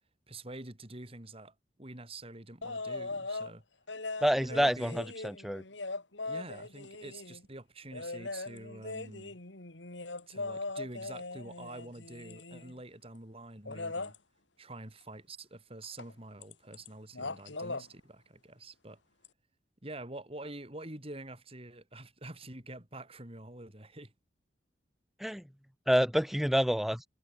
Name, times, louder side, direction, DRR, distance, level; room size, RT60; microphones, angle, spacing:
voice 1, 0.3-3.6 4.4-5.0 6.2-9.4 10.3-14.1 14.6-19.0 19.8-24.1, right 2 dB, 30° right, 3.1 m, -47 dB
sound 1, 2.6-3.5 3.9-7.4 7.9-12.8 13.7-14.2 16.0-16.1 16.4-16.9 17.1-17.9 19.2-19.3, left 3 dB, 75° left, 2.8 m, -40 dB
voice 2, 4.2-5.6 25.2-25.4 25.9-27.0, equal, ahead, 0.7 m, -28 dB
head